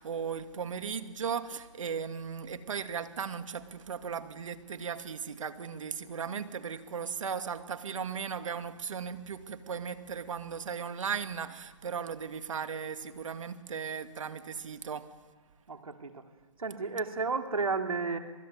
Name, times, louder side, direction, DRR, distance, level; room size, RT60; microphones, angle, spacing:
voice 1, 0.0-15.1, right 6 dB, 65° right, 2.3 m, -37 dB
voice 2, 15.7-16.3 16.6-18.2, right 4 dB, 85° right, 2.9 m, -32 dB
27.0 x 21.0 x 9.5 m
hypercardioid pair, 140°, 17 cm